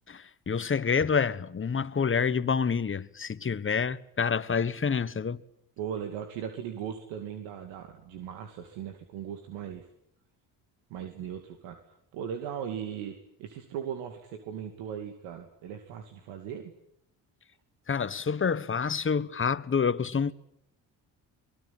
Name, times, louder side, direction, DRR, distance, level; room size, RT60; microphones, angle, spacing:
voice 1, 0.1-5.4 17.9-20.3, left 6 dB, 25° left, 1.3 m, -28 dB
voice 2, 5.8-9.9 10.9-11.8 12.1-16.7, right 8 dB, 85° right, 2.6 m, -38 dB
24.5 x 21.0 x 9.5 m
supercardioid pair, 70°, 46 cm